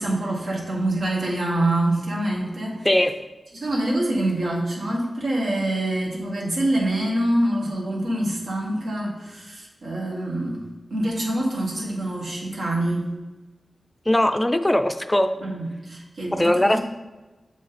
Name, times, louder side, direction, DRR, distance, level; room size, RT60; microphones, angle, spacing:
voice 1, 0.0-2.9 3.5-13.1 15.4-16.8, right 1 dB, 85° right, -3 dB, 1.8 m, -25 dB
voice 2, 14.1-15.3 16.3-16.8, left 1 dB, 15° left, 8 dB, 0.4 m, -20 dB
7.1 x 5.0 x 4.2 m, 1.2 s
wide cardioid pair, 95°, 0 cm